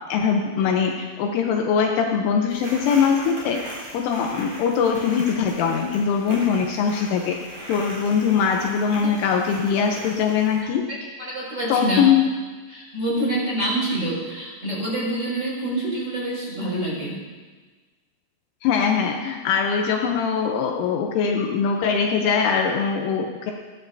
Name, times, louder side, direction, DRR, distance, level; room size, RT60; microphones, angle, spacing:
voice 1, 0.1-3.6 3.9-7.4 7.7-10.8 11.7-12.2 18.6-23.5, left 6 dB, 80° left, 2 dB, 3.2 m, -22 dB
sound 1, 2.5-10.6, right 1 dB, 40° right, 5.4 m, -39 dB
voice 2, 10.9-12.0 12.7-17.2, right 1 dB, 15° right, -6 dB, 5.7 m, -27 dB
20.0 x 15.5 x 2.8 m, 1.4 s
omnidirectional pair, 5.9 m